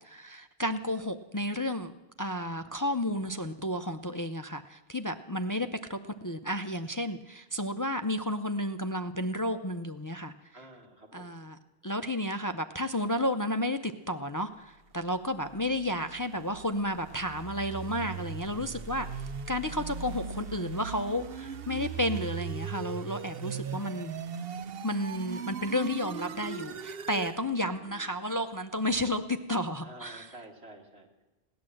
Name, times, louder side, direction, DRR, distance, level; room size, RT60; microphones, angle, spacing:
voice 1, 0.0-1.9 2.2-10.3 11.1-11.6 11.8-24.1 24.8-30.4, left 1 dB, 25° left, 9 dB, 0.4 m, -32 dB
voice 2, 10.5-11.3 27.4-28.2 29.8-31.2, right 2 dB, 85° right, 1 dB, 2.6 m, -51 dB
sound 1, 15.2-27.4, right 7 dB, 70° right, 0.9 m, -39 dB
17.5 x 10.5 x 7.6 m, 1.0 s
omnidirectional pair, 1.0 m